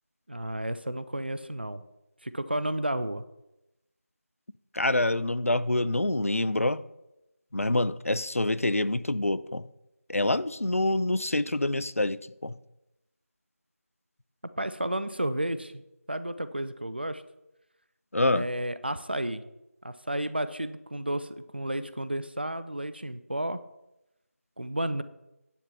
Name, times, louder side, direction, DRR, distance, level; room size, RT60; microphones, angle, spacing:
voice 1, 0.3-1.8 2.2-3.2 14.6-15.8 16.1-17.2 18.3-19.4 19.8-23.6 24.6-25.0, right 1 dB, 40° right, 13 dB, 0.6 m, -32 dB
voice 2, 4.7-6.8 7.5-9.6 10.1-12.6 18.1-18.4, left 2 dB, 65° left, 17 dB, 0.5 m, -26 dB
10.0 x 6.7 x 5.7 m, 0.91 s
figure-of-eight pair, 175°, 8 cm